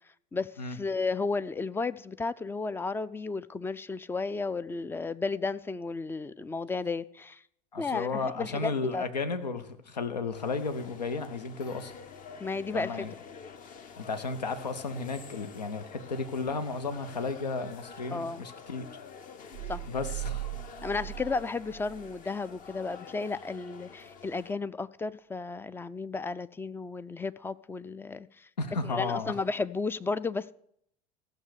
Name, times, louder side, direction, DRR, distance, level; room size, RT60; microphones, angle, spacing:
voice 1, 0.3-7.4 7.8-9.0 12.4-13.0 18.1-18.4 19.7-19.9 20.8-28.5 28.8-30.5, left 4 dB, 10° left, 17 dB, 0.3 m, -33 dB
voice 2, 7.7-11.9 12.7-13.1 14.0-18.9 19.9-20.4 28.6-29.3, left 4 dB, 80° left, 10 dB, 0.9 m, -33 dB
sound 1, 10.3-24.5, left 6 dB, 40° left, 1.0 m, -48 dB
sound 2, 19.5-22.2, right 20 dB, 65° right, 0.4 m, -39 dB
14.5 x 6.6 x 6.5 m, 0.69 s
figure-of-eight pair, 75°, 21 cm